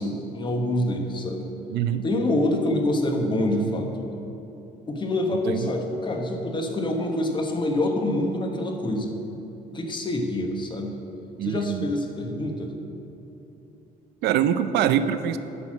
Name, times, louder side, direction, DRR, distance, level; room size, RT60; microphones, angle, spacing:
voice 1, 0.0-1.5 2.0-3.9 4.9-9.1 9.7-11.0 11.4-12.7, left 1 dB, 30° left, 3 dB, 1.2 m, -26 dB
voice 2, 1.7-2.0 5.5-5.7 11.4-11.8 14.2-15.4, right 9 dB, 75° right, 11 dB, 0.5 m, -24 dB
11.0 x 4.2 x 7.3 m, 3.0 s
cardioid pair, 110°, 17 cm